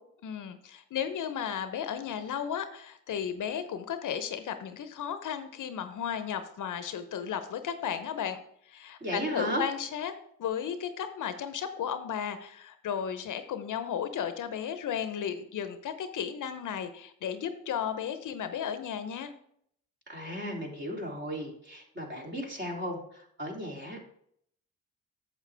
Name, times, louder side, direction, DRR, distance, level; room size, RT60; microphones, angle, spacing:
voice 1, 0.2-8.4 8.7-10.1 10.4-19.3, left 8 dB, 60° left, 10 dB, 0.8 m, -34 dB
voice 2, 9.0-9.6 20.1-24.0, equal, 30° right, -1 dB, 3.0 m, -35 dB
8.3 x 7.1 x 3.4 m, 0.69 s
supercardioid pair, 50°, 35 cm